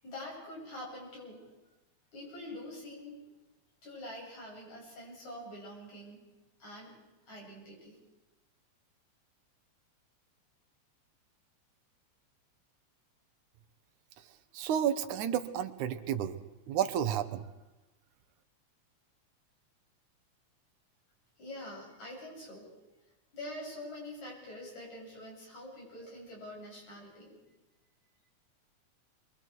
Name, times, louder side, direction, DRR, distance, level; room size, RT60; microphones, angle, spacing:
voice 1, 0.0-1.5 2.1-3.4 3.8-6.2 6.6-6.9 7.3-8.0 21.4-22.7 23.3-27.4, left 1 dB, 70° left, -3 dB, 8.8 m, -45 dB
voice 2, 14.5-16.4 16.7-17.4, right 9 dB, 85° right, 9 dB, 2.5 m, -31 dB
27.5 x 22.0 x 4.6 m, 1.1 s
omnidirectional pair, 3.4 m